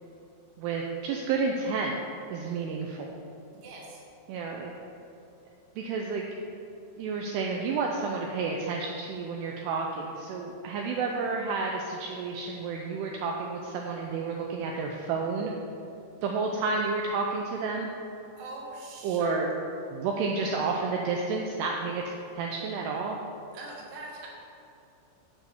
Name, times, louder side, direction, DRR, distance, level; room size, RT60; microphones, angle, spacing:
voice 1, 0.6-2.0 2.3-3.2 4.3-4.7 5.8-6.3 7.0-15.5 16.2-17.9 19.0-19.5 19.9-22.0 22.4-23.2, right 4 dB, 85° right, 1 dB, 2.3 m, -30 dB
voice 2, 3.5-4.0 18.4-19.4 23.5-24.3, right 2 dB, 65° right, -3 dB, 1.8 m, -42 dB
7.8 x 4.8 x 6.9 m, 2.8 s
omnidirectional pair, 5.3 m